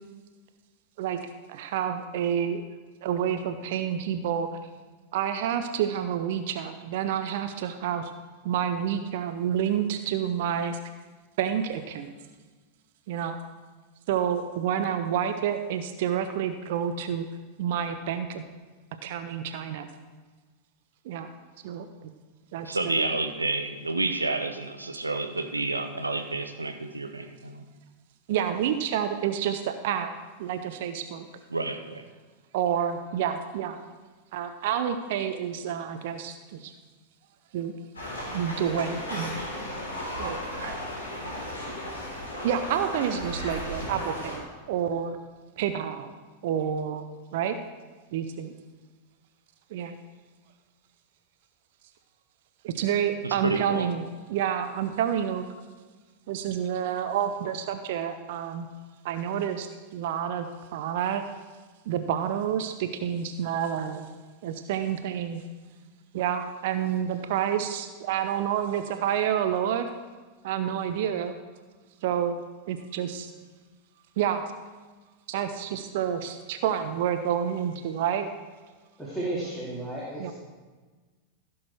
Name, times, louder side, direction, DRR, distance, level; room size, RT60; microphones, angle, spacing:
voice 1, 1.0-2.6 3.0-4.6 5.1-8.1 8.4-10.8 11.4-12.1 13.1-13.4 14.1-17.3 17.6-18.4 19.0-19.9 21.0-21.3 21.6-22.1 22.5-23.0 28.3-30.1 30.4-31.3 32.5-33.8 34.3-36.7 37.5-37.7 38.2-39.3 40.2-40.7 42.4-45.2 45.6-46.1 46.4-47.1 47.3-47.6 48.1-48.5 49.7-49.9 52.6-55.4 56.3-58.7 59.0-61.2 61.9-64.1 64.4-65.4 66.1-69.9 70.4-71.4 72.0-72.4 72.7-73.3 74.2-74.4 75.3-78.3 80.2-80.3, right 9 dB, 50° right, 8 dB, 0.7 m, -29 dB
voice 2, 22.6-27.6 31.5-32.0 53.2-53.9, right 3 dB, 80° right, 6 dB, 0.9 m, -29 dB
sound 1, 37.9-44.4, left 1 dB, 70° left, 3.7 m, -35 dB
voice 3, 79.0-80.3, right 2 dB, ahead, -8 dB, 2.3 m, -33 dB
15.5 x 6.4 x 4.5 m, 1.3 s
figure-of-eight pair, 90°, 0 cm